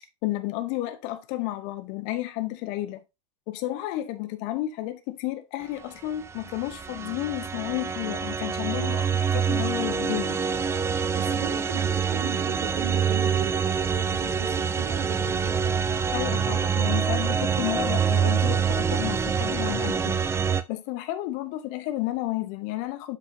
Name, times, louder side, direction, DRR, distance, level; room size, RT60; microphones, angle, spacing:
voice 1, 0.2-3.0 3.5-10.4 16.1-20.2 20.7-23.2, left 16 dB, 50° left, 1.1 m, -32 dB
sound 1, 6.3-20.6, right 7 dB, 15° right, 0.5 m, -26 dB
voice 2, 11.1-15.6, right 11 dB, 65° right, 0.8 m, -38 dB
7.7 x 6.0 x 2.8 m
figure-of-eight pair, 85°, 16 cm